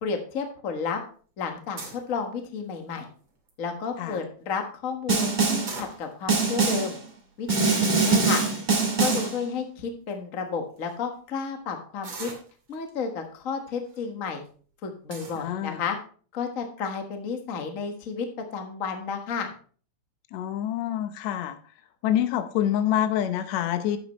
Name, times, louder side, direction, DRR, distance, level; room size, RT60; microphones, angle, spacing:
voice 1, 0.0-1.0 1.4-3.1 3.6-7.0 7.4-8.4 9.0-12.3 12.7-14.4 14.8-16.0 16.3-18.3 18.5-19.5, left 5 dB, 45° left, 4 dB, 1.1 m, -32 dB
sound 1, 1.8-2.1 2.7-3.1 3.5-3.6 3.8-4.1 5.5-6.4 7.1-7.2 7.4-7.6 9.0-9.4 10.1-10.2 10.8-10.9 12.0-12.9 13.7-14.0 14.5-14.6 15.1-15.4, right 4 dB, 45° right, 3.2 m, -39 dB
Snare drum, 5.1-5.8 6.3-7.0 7.5-9.4, right 4 dB, 25° right, 0.9 m, -23 dB
voice 2, 15.4-15.8 20.3-21.6 22.0-24.0, left 11 dB, 70° left, 9 dB, 2.0 m, -26 dB
11.0 x 8.6 x 3.1 m, 0.42 s
omnidirectional pair, 3.6 m